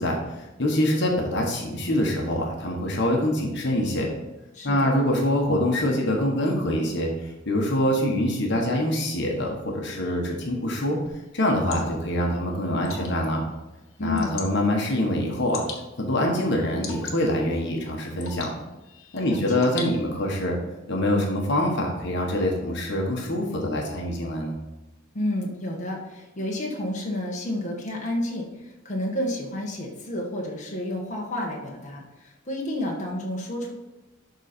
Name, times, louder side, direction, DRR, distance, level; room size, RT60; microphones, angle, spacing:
voice 1, 0.0-4.1 4.6-11.0 11.3-13.4 14.0-15.6 16.0-18.5 19.1-20.6 20.9-24.6, left 1 dB, 60° left, 0 dB, 1.4 m, -25 dB
voice 2, 4.5-4.9 14.0-14.4 19.2-19.7 25.1-33.7, left 1 dB, 35° left, -2 dB, 1.4 m, -30 dB
Water / Drip, 11.1-20.4, left 5 dB, 75° left, 1.6 m, -43 dB
12.0 x 4.0 x 4.4 m, 1.0 s
head